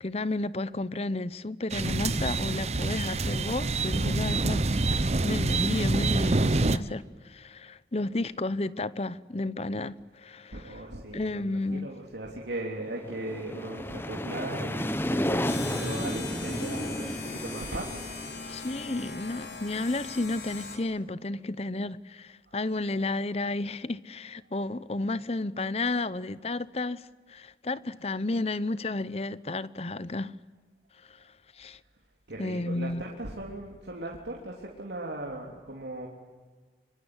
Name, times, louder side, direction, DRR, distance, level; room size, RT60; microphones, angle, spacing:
voice 1, 0.0-5.0 5.2-10.8 11.1-11.9 18.5-30.3 31.1-31.2 31.6-31.8 32.4-33.1, left 2 dB, 35° left, 0.8 m, -32 dB
sound 1, 1.7-6.8, right 2 dB, 35° right, 0.8 m, -26 dB
voice 2, 10.5-18.0 22.5-22.6 32.3-36.1, right 1 dB, 85° right, 3.4 m, -38 dB
sound 2, 12.8-19.6, left 1 dB, 15° left, 1.0 m, -33 dB
sound 3, 15.5-20.8, left 4 dB, 70° left, 5.0 m, -40 dB
25.5 x 24.0 x 9.7 m
head